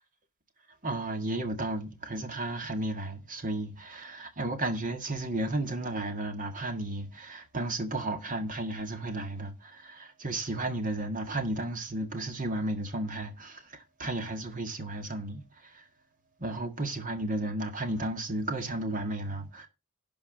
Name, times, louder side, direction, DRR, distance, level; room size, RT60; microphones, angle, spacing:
voice 1, 0.8-15.9 16.4-19.7, right 2 dB, 35° right, 1.8 m, -33 dB
11.5 x 4.8 x 6.0 m
head